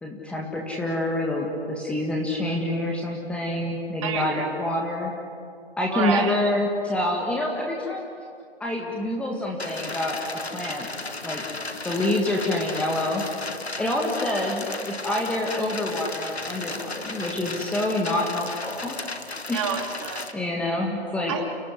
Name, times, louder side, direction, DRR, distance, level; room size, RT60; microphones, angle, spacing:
voice 1, 0.0-5.1 5.8-8.1 8.6-10.9 11.2-11.4 11.8-13.2 13.8-19.0 19.5-19.6 20.3-21.3, left 1 dB, 5° left, -1 dB, 1.8 m, -27 dB
voice 2, 4.0-4.5 5.9-6.4 19.5-20.3 21.3-21.5, right 7 dB, 30° right, 4 dB, 2.9 m, -29 dB
sound 1, 9.6-20.3, left 3 dB, 85° left, 2.3 m, -35 dB
30.0 x 18.0 x 9.9 m, 2.3 s
figure-of-eight pair, 145°, 31 cm